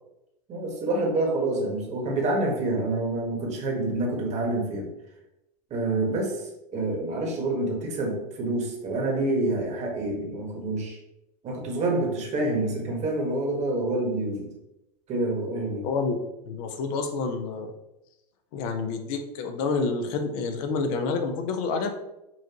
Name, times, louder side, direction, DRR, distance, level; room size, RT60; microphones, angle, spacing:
voice 1, 0.5-4.9 5.7-6.4 6.7-11.0 11.4-14.5 15.1-15.9, right 2 dB, 30° right, 0 dB, 1.4 m, -27 dB
voice 2, 15.8-17.7 18.5-21.9, left 4 dB, 55° left, 5 dB, 0.8 m, -28 dB
5.8 x 2.5 x 2.9 m, 0.90 s
hypercardioid pair, 100°, 21 cm